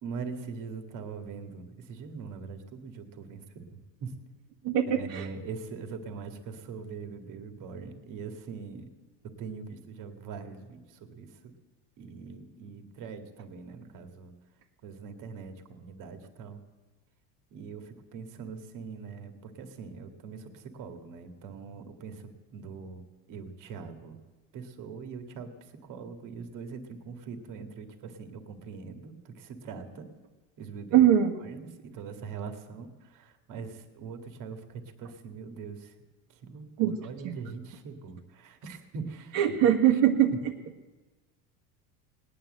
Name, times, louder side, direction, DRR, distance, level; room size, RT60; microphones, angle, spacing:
voice 1, 0.0-4.1 4.9-8.9 9.2-11.5 12.0-14.3 14.8-16.6 17.5-23.0 23.3-24.2 24.5-30.1 30.6-31.1 31.4-35.9 36.3-39.6 39.9-40.0, right 5 dB, 55° right, 7 dB, 1.9 m, -42 dB
voice 2, 4.6-5.2 30.9-31.3 36.8-36.9 37.2-37.3 39.3-40.3, right 10 dB, 75° right, -1 dB, 1.7 m, -22 dB
18.5 x 9.7 x 7.8 m, 1.2 s
supercardioid pair, 115°, 38 cm